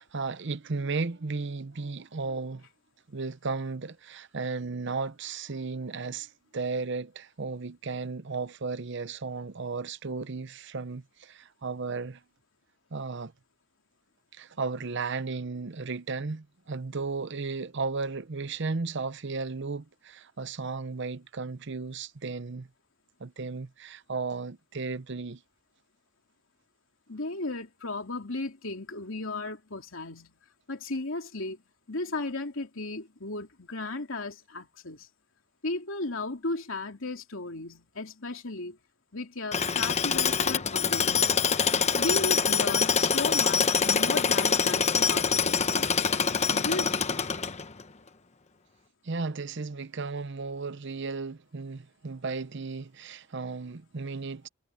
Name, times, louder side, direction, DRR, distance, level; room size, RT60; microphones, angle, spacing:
voice 1, 0.0-2.7 3.1-12.2 12.9-13.3 14.3-22.7 23.2-25.4 49.0-54.5, right 4 dB, 60° right, 0.8 m, -34 dB
voice 2, 27.1-30.3 30.7-31.6 31.9-35.1 35.6-38.8 39.1-41.4 42.0-45.9 46.5-47.0, left 2 dB, 75° left, 3.1 m, -35 dB
Tools, 39.5-47.8, left 6 dB, 35° left, 1.0 m, -25 dB
head